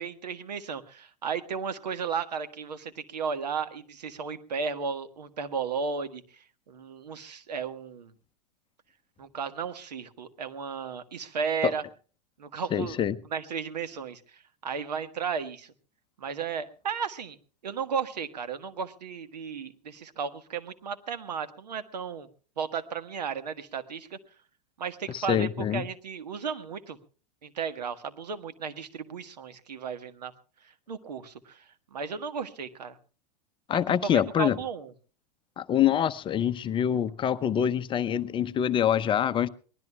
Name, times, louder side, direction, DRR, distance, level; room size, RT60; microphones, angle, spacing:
voice 1, 0.0-6.2 6.7-8.1 9.2-11.8 12.4-13.0 13.3-15.7 16.2-17.4 17.6-22.3 22.6-24.2 24.8-27.0 27.4-30.3 30.9-31.6 31.9-33.0 34.0-34.9, right 6 dB, 75° right, 1.5 m, -34 dB
voice 2, 12.7-13.2 25.1-25.8 33.7-34.6 35.6-39.5, left 9 dB, 25° left, 0.7 m, -25 dB
24.0 x 19.0 x 2.3 m
figure-of-eight pair, 100°, 21 cm